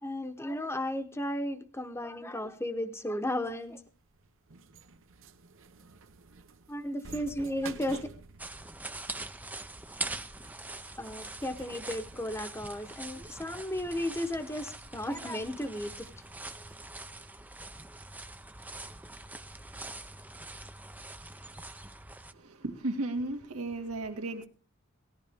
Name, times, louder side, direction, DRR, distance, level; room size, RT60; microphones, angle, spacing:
voice 1, 0.0-3.8 6.7-8.0 11.0-16.1, left 1 dB, 10° left, 8 dB, 1.0 m, -34 dB
sound 1, 3.2-16.8, right 5 dB, 65° right, 0.9 m, -53 dB
sound 2, 8.4-22.3, right 2 dB, 10° right, 0.6 m, -43 dB
voice 2, 22.3-24.5, right 2 dB, 80° right, 4 dB, 2.1 m, -34 dB
19.0 x 14.0 x 3.5 m, 0.40 s
head